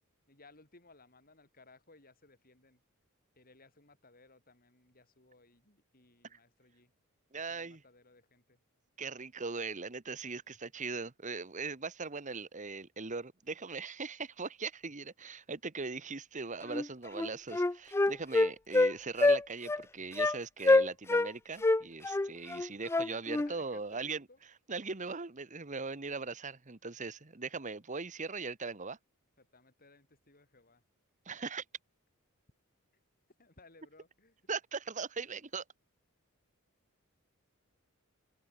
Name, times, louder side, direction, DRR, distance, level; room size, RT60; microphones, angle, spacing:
voice 1, 0.3-2.8 3.4-6.9 7.5-8.6 23.1-24.4 29.4-30.8 33.4-34.4, left 3 dB, 40° left, 7.0 m, -61 dB
voice 2, 7.3-7.8 9.0-24.2 24.7-29.0 31.2-31.6 34.5-35.6, right 4 dB, 35° right, 1.2 m, -40 dB
Wind instrument woodwind instrument, 16.7-16.9 17.2-18.9 19.2-19.4 19.7-19.8 20.2-20.4 20.6-21.3 21.6-23.5, left 2 dB, 10° left, 0.3 m, -26 dB
open air
head